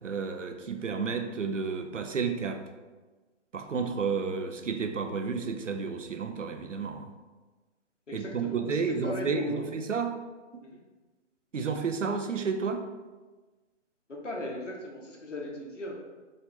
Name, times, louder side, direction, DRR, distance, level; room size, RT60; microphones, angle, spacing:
voice 1, 0.0-2.6 3.5-7.1 8.1-10.1 11.5-12.8, right 5 dB, 85° right, 6 dB, 0.5 m, -31 dB
voice 2, 8.1-9.7 10.6-10.8 14.1-16.0, left 1 dB, 80° left, -2 dB, 0.9 m, -37 dB
4.9 x 2.5 x 2.7 m, 1.3 s
figure-of-eight pair, 140°, 36 cm